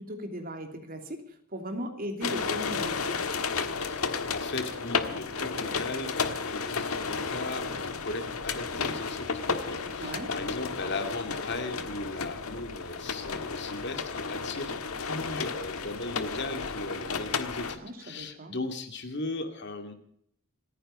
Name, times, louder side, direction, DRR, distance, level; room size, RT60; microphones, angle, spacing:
voice 1, 0.0-3.2 10.0-10.3 17.8-18.5, equal, 45° right, 5 dB, 2.9 m, -38 dB
sound 1, 2.2-17.8, left 5 dB, 90° left, 1.5 m, -33 dB
voice 2, 3.8-19.9, left 2 dB, 55° left, 7 dB, 2.3 m, -37 dB
28.0 x 10.0 x 5.0 m, 0.68 s
head